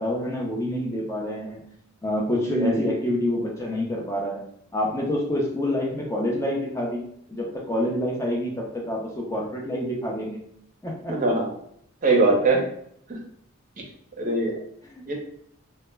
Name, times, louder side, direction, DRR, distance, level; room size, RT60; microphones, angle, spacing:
voice 1, 0.0-1.6 2.0-4.4 4.7-7.0 7.3-10.4 10.8-11.1 14.9-15.1, left 1 dB, 15° left, -3 dB, 0.4 m, -27 dB
voice 2, 2.4-2.8 11.1-11.5 12.0-12.7 14.2-14.5 15.1-15.2, right 2 dB, 35° right, -1 dB, 0.6 m, -21 dB
2.1 x 2.0 x 3.3 m, 0.68 s
head